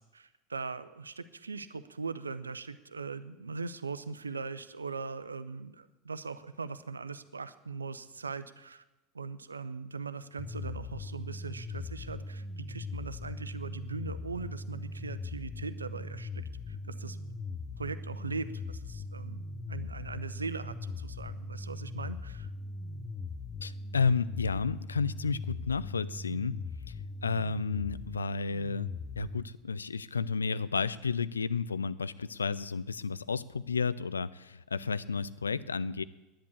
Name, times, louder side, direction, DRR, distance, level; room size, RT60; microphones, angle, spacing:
voice 1, 0.0-8.8 9.1-17.2 17.8-22.5, right 4 dB, 80° right, 14 dB, 0.6 m, -40 dB
sound 1, 10.4-29.4, left 3 dB, 25° left, 0.7 m, -40 dB
voice 2, 23.6-26.6 27.2-36.0, left 5 dB, 75° left, 17 dB, 0.4 m, -32 dB
10.5 x 10.0 x 8.3 m, 1.1 s
figure-of-eight pair, 80°, 0 cm